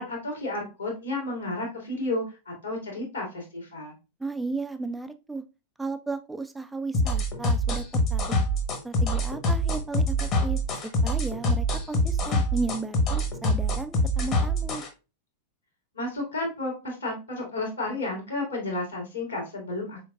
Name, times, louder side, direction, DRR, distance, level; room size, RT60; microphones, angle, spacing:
voice 1, 0.0-3.9 15.9-20.1, left 2 dB, 75° left, 0 dB, 2.0 m, -32 dB
voice 2, 4.2-5.4 5.8-8.4 8.8-14.8, right 3 dB, 5° right, 9 dB, 0.3 m, -34 dB
sound 1, 6.9-14.9, equal, 35° left, 1.0 m, -25 dB
4.3 x 3.8 x 2.3 m, 0.29 s
figure-of-eight pair, 90°, 0 cm